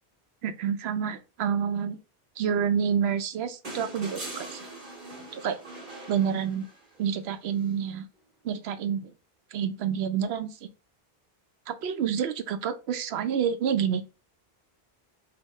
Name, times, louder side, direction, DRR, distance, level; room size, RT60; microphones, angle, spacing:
voice 1, 0.4-2.0 2.4-4.6 5.3-5.6 6.1-6.7 7.0-8.0 8.4-9.1 9.5-10.7 11.7-14.0, right 8 dB, 85° right, 0.9 m, -28 dB
sound 1, 3.6-7.0 8.5-8.6, right 2 dB, 55° right, 1.7 m, -41 dB
5.3 x 2.1 x 4.1 m
omnidirectional pair, 1.0 m